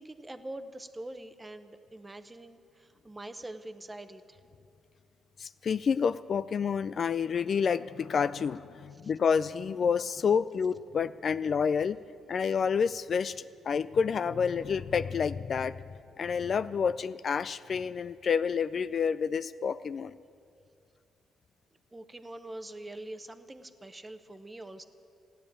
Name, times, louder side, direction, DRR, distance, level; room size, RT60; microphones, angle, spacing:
voice 1, 0.0-4.4 9.0-9.1 21.9-24.8, right 1 dB, 15° right, 9 dB, 0.9 m, -44 dB
voice 2, 5.4-12.0 12.3-15.8 16.2-20.2, left 6 dB, 50° left, 14 dB, 0.3 m, -29 dB
15.5 x 10.5 x 8.7 m, 2.5 s
cardioid pair, 90°, 0 cm